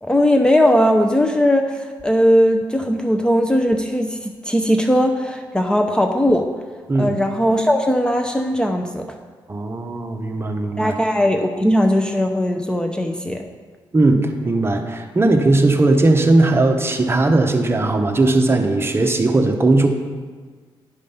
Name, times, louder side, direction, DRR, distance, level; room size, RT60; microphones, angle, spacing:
voice 1, 0.0-6.5 7.0-9.0 10.8-13.4, equal, 10° left, 4 dB, 0.6 m, -18 dB
voice 2, 9.5-10.9 13.9-19.9, right 2 dB, 25° right, 5 dB, 0.9 m, -18 dB
10.5 x 5.1 x 5.6 m, 1.5 s
cardioid pair, 85°, 9 cm